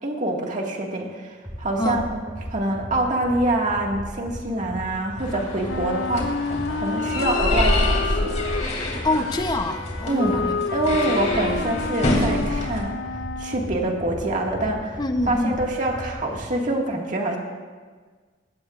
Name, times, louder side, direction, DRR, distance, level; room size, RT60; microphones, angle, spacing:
voice 1, 0.0-1.3 1.6-2.2 2.5-8.4 10.1-10.4 10.7-12.9 13.4-15.0 15.3-17.4, right 1 dB, 45° right, 0 dB, 2.0 m, -25 dB
sound 1, 1.4-16.5, equal, 15° right, 2.2 m, -36 dB
sound 2, 5.2-12.8, left 1 dB, 40° left, 2.8 m, -27 dB
Wind instrument woodwind instrument, 5.7-13.8, left 5 dB, 90° left, 0.5 m, -30 dB
voice 2, 9.0-11.2 15.0-15.6, left 2 dB, 25° left, 6 dB, 0.8 m, -26 dB
20.0 x 16.5 x 2.5 m, 1.5 s
head